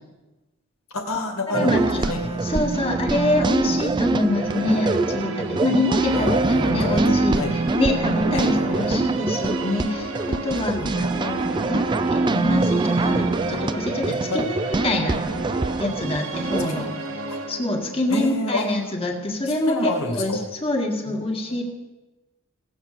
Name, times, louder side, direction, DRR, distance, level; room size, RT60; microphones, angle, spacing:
voice 1, 0.9-2.4 6.1-7.6 8.3-9.0 10.8-11.0 14.3-14.5 16.7-16.8 17.3-17.4 18.1-18.7 19.5-20.5 21.1-21.6, left 1 dB, 70° left, 4 dB, 1.9 m, -29 dB
voice 2, 1.5-2.0 2.4-7.4 7.7-11.4 11.7-15.2 15.8-16.9 17.5-19.9 20.2-21.6, left 1 dB, 25° left, 1 dB, 1.8 m, -25 dB
sound 1, 1.5-16.7, right 3 dB, 20° right, 0.4 m, -24 dB
Musical instrument, 3.9-19.4, right 3 dB, 65° right, 1.2 m, -34 dB
16.5 x 7.2 x 6.5 m, 1.1 s
head